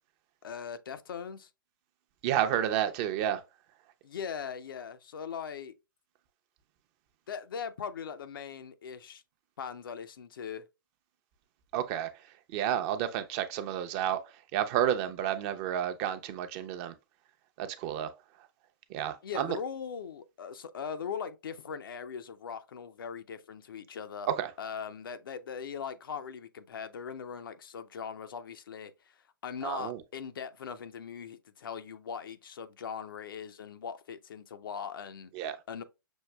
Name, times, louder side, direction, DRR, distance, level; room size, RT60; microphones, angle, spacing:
voice 1, 0.4-1.5 4.0-5.7 7.3-9.2 9.6-10.6 19.2-24.3 24.6-29.2 29.4-35.3 35.7-35.8, left 7 dB, 80° left, 0.5 m, -40 dB
voice 2, 2.2-3.4 11.7-12.1 12.5-14.2 14.5-16.9 17.6-18.1 18.9-19.6 24.4-24.5 29.6-30.0 35.3-35.6, right 10 dB, 40° right, 0.5 m, -30 dB
6.2 x 2.6 x 2.2 m
hypercardioid pair, 130°, 11 cm